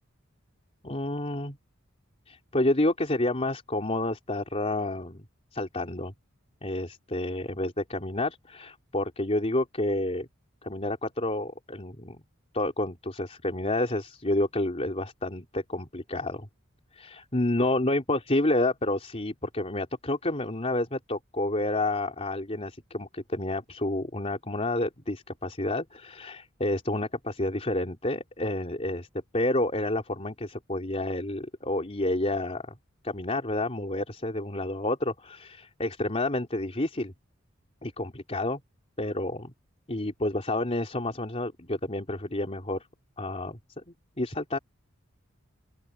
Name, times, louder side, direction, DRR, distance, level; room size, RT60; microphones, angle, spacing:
voice 1, 0.8-1.6 2.3-5.2 5.5-6.1 6.6-10.3 10.6-12.2 12.5-16.5 16.9-29.1 29.3-32.7 33.0-37.1 37.8-38.6 39.0-39.5 39.9-42.9 43.2-43.6 43.9-44.6, left 1 dB, 30° left, 3.4 m, -29 dB
open air
head